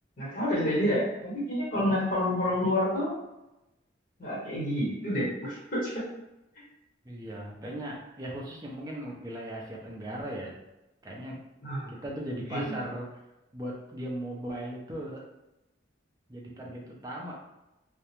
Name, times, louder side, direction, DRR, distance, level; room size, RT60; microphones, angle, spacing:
voice 1, 0.2-3.1 4.2-6.0 11.6-11.9 12.5-12.8, left 1 dB, 45° left, -7 dB, 1.2 m, -28 dB
voice 2, 7.0-10.6 11.0-11.4 12.0-13.2 13.5-15.2 16.3-17.3, right 1 dB, 20° right, -2 dB, 0.4 m, -38 dB
2.3 x 2.1 x 2.9 m, 0.95 s
head